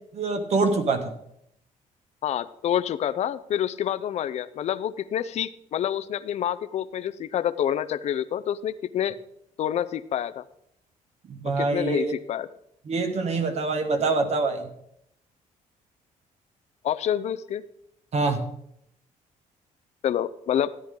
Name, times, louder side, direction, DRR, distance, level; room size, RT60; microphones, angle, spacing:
voice 1, 0.1-1.1 11.3-12.1 12.9-14.7 18.1-18.4, right 3 dB, 50° right, 7 dB, 1.6 m, -25 dB
voice 2, 2.2-9.2 9.6-10.4 11.6-12.5 16.8-17.6 20.0-20.7, left 10 dB, 50° left, 13 dB, 0.5 m, -27 dB
13.0 x 10.0 x 3.8 m, 0.74 s
cardioid pair, 130°, 14 cm